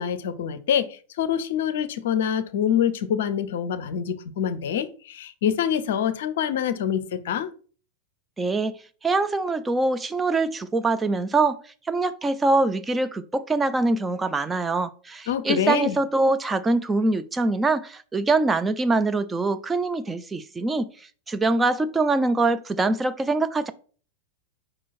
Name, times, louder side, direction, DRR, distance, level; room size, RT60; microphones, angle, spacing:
voice 1, 0.0-7.5 15.3-16.0, left 9 dB, 55° left, 0.6 m, -25 dB
voice 2, 8.4-11.6 11.9-23.7, right 3 dB, 15° right, 0.4 m, -24 dB
4.9 x 4.5 x 4.2 m
figure-of-eight pair, 90°, 0 cm